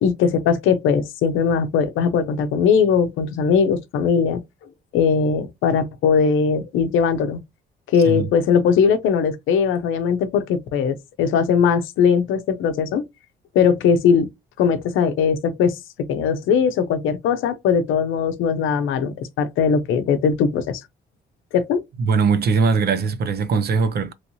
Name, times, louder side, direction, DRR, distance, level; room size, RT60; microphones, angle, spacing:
voice 1, 0.0-4.4 4.9-7.4 7.9-13.0 13.5-14.3 14.6-15.8 16.1-20.8 21.5-21.8, left 6 dB, 85° left, 0.6 m, -19 dB
voice 2, 22.0-24.1, right 5 dB, 55° right, 0.6 m, -20 dB
3.1 x 2.7 x 2.9 m
cardioid pair, 90°, 20 cm